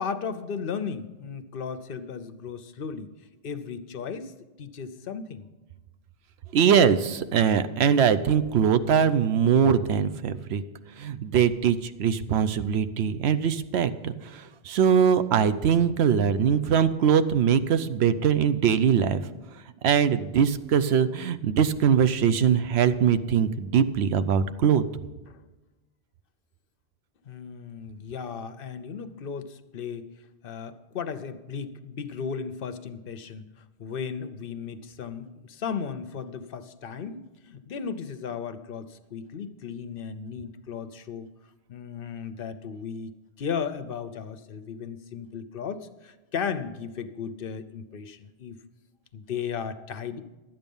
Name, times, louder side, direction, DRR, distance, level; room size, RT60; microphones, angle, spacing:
voice 1, 0.0-3.1 3.4-4.3 4.6-5.5 25.3-25.4 27.3-30.1 30.4-41.3 41.7-43.1 43.4-48.6 49.1-50.2, left 6 dB, 65° left, 11 dB, 0.8 m, -35 dB
voice 2, 6.5-10.6 11.0-19.2 19.8-24.8, right 7 dB, 85° right, 12 dB, 0.9 m, -22 dB
12.0 x 8.9 x 5.4 m, 1.1 s
omnidirectional pair, 1.1 m